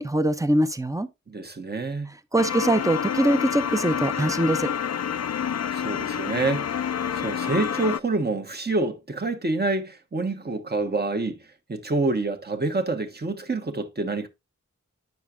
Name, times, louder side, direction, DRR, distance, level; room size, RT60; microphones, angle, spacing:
voice 1, 0.0-1.1 2.3-4.7, right 1 dB, 10° right, 0.7 m, -23 dB
voice 2, 1.3-2.1 5.7-6.8 7.1-11.4 11.7-14.3, right 3 dB, 35° right, 1.2 m, -27 dB
sound 1, 2.4-8.0, left 8 dB, 60° left, 0.4 m, -28 dB
9.3 x 5.9 x 2.4 m
wide cardioid pair, 60°, 30 cm